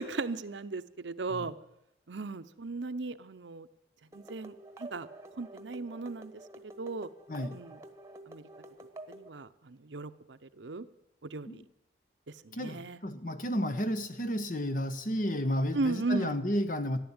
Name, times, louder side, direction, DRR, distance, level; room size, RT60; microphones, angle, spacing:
voice 1, 0.0-1.6 2.1-3.7 4.1-5.1 5.4-6.3 6.6-7.1 7.5-7.8 8.3-8.5 9.1-10.9 11.2-11.6 12.3-13.0 15.7-16.4, right 3 dB, 80° right, 12 dB, 0.8 m, -36 dB
sound 1, 4.1-9.3, right 2 dB, 15° right, 1.2 m, -49 dB
voice 2, 12.5-17.0, equal, 45° left, 10 dB, 1.1 m, -32 dB
14.0 x 11.0 x 8.8 m, 0.81 s
head